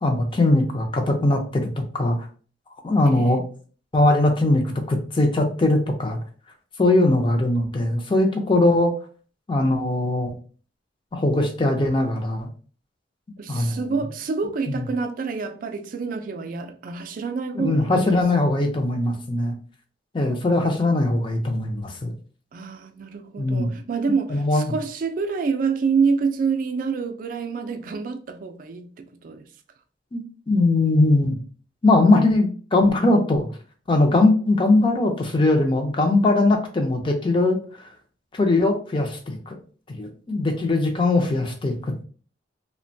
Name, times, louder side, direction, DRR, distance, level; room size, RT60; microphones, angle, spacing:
voice 1, 0.0-1.7 1.9-2.2 2.8-3.4 3.9-6.2 6.8-8.9 9.5-10.3 11.1-12.5 13.5-13.8 14.7-14.8 17.6-19.5 20.1-22.1 23.4-23.7 24.3-24.7 30.1-31.4 31.8-33.5 33.9-37.6 38.3-39.6 39.9-42.0, left 2 dB, 25° left, 0.4 m, -20 dB
voice 2, 3.1-3.4 13.4-18.2 22.5-29.5, right 5 dB, 45° right, 0.3 m, -27 dB
2.9 x 2.1 x 2.6 m
head